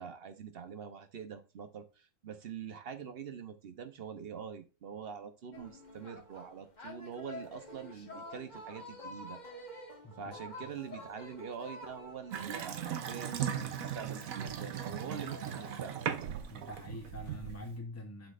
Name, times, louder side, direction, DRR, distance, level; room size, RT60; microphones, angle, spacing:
voice 1, 0.0-9.4 10.2-16.0, right 7 dB, 50° right, 1.0 m, -45 dB
sound 1, 5.5-15.9, left 1 dB, 35° left, 1.5 m, -50 dB
voice 2, 10.0-10.4 10.6-10.7 16.5-18.3, left 1 dB, 15° left, 0.5 m, -45 dB
Water tap faucet / Sink (filling or washing) / Bathtub (filling or washing), 12.3-17.8, right 9 dB, 90° right, 1.2 m, -38 dB
8.1 x 6.2 x 2.5 m
omnidirectional pair, 1.4 m